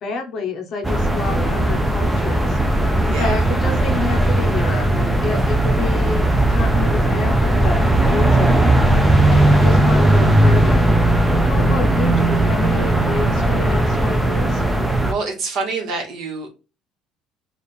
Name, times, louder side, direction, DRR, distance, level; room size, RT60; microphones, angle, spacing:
voice 1, 0.0-2.6 3.0-8.8 9.3-10.9 11.4-14.6, left 4 dB, 35° left, 4 dB, 0.7 m, -28 dB
sound 1, 0.8-15.1, right 1 dB, 5° right, 0.4 m, -17 dB
voice 2, 3.1-3.4 15.0-16.5, right 4 dB, 45° right, 2 dB, 1.3 m, -26 dB
3.5 x 2.4 x 4.2 m, 0.31 s
cardioid pair, 180°, 0 cm